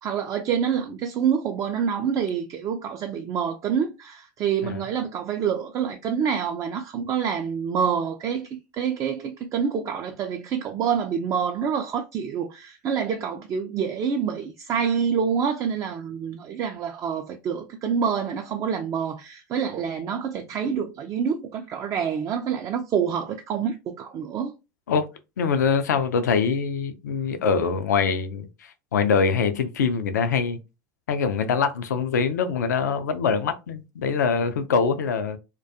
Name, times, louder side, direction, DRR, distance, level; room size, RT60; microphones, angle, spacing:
voice 1, 0.0-24.5, right 7 dB, 35° right, 0.3 m, -27 dB
voice 2, 25.4-30.6 31.1-35.4, left 5 dB, 75° left, 0.4 m, -24 dB
2.2 x 2.2 x 2.6 m
figure-of-eight pair, 75°, 9 cm